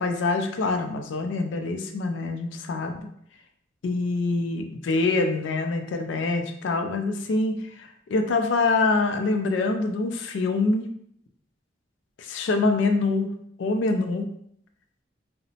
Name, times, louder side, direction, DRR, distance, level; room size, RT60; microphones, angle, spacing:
voice 1, 0.0-3.1 3.8-10.9 12.2-13.3 13.6-14.3, left 3 dB, 90° left, 5 dB, 0.4 m, -25 dB
2.9 x 2.1 x 2.7 m, 0.68 s
head